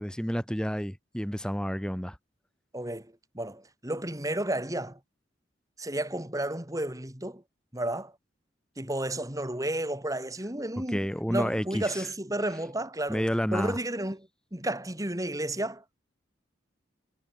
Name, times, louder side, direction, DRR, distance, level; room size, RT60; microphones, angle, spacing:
voice 1, 0.0-2.2 10.8-12.1 13.1-13.8, equal, 5° left, 8.0 m, -30 dB
voice 2, 2.7-5.0 5.8-7.4 7.7-8.1 8.8-11.0 11.3-13.3 13.5-16.0, right 1 dB, 20° right, 3.4 m, -32 dB
head